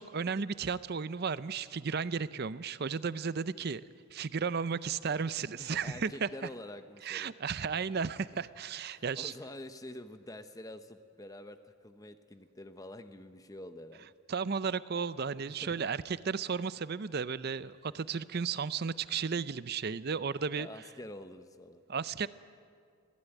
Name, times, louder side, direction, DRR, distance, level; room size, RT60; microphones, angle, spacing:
voice 1, 0.0-3.8 4.1-6.3 7.0-9.3 14.3-20.7 21.9-22.3, right 5 dB, 50° right, 16 dB, 0.5 m, -34 dB
voice 2, 5.6-7.3 8.9-14.1 15.5-15.9 20.5-21.8, left 1 dB, 15° left, 9 dB, 0.7 m, -47 dB
21.0 x 16.5 x 9.1 m, 2.2 s
head